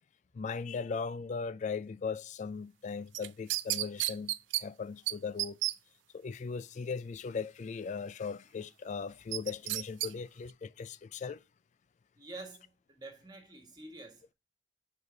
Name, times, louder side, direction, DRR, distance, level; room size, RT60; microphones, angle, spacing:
voice 1, 0.3-5.6 6.1-11.4, left 5 dB, 40° left, 0.3 m, -38 dB
sound 1, 3.1-4.6 5.1-5.2 5.4-5.7 9.3-10.1 10.5-10.6, right 17 dB, 85° right, 0.3 m, -32 dB
voice 2, 12.2-14.3, right 2 dB, 25° right, 1.6 m, -48 dB
5.5 x 4.8 x 3.8 m
head